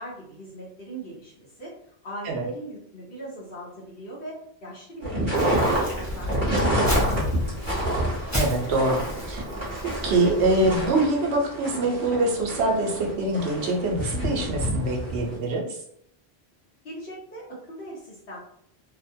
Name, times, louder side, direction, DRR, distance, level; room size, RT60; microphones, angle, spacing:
voice 1, 0.0-1.7 2.0-7.8 16.8-18.4, right 1 dB, 65° left, -7 dB, 1.0 m, -39 dB
sound 1, 5.0-15.4, equal, 30° right, 1.0 m, -28 dB
Crumpling crinkling, 5.3-10.9, equal, 20° left, 0.6 m, -33 dB
voice 2, 8.3-9.4 10.0-15.6, right 2 dB, 85° right, 1 dB, 0.9 m, -24 dB
2.6 x 2.1 x 2.6 m, 0.69 s
omnidirectional pair, 1.1 m